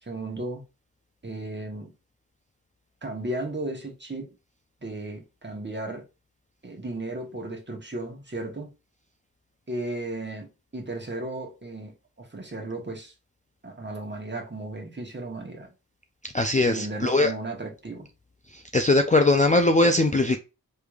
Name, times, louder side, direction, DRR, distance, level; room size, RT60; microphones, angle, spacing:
voice 1, 0.0-0.6 1.2-1.9 3.0-4.3 4.8-6.0 6.6-8.7 9.7-13.1 13.6-15.7 16.7-18.1, right 2 dB, 30° right, 1.2 m, -35 dB
voice 2, 16.2-17.3 18.5-20.4, left 2 dB, 20° left, 0.4 m, -21 dB
3.4 x 3.2 x 2.3 m
cardioid pair, 40°, 37 cm